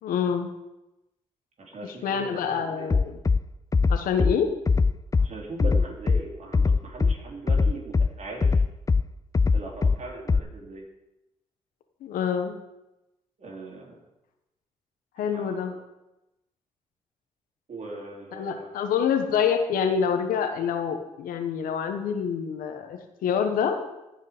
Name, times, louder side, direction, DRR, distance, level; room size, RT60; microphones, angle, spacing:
voice 1, 0.0-0.5 1.8-3.2 3.9-4.5 12.0-12.6 15.2-15.7 18.3-23.8, left 7 dB, 85° left, 6 dB, 1.1 m, -26 dB
voice 2, 1.6-2.9 5.2-8.6 9.5-10.8 13.4-14.0 15.3-15.8 17.7-18.9, right 2 dB, 55° right, -1 dB, 3.4 m, -39 dB
Bass drum, 2.9-3.4 3.7-4.3 4.7-5.3 5.6-6.2 6.5-7.1 7.5-8.1 8.4-9.0 9.3-10.0 10.3-10.4, left 4 dB, 25° left, 0.4 m, -20 dB
15.5 x 5.5 x 5.0 m, 0.94 s
supercardioid pair, 55°, 14 cm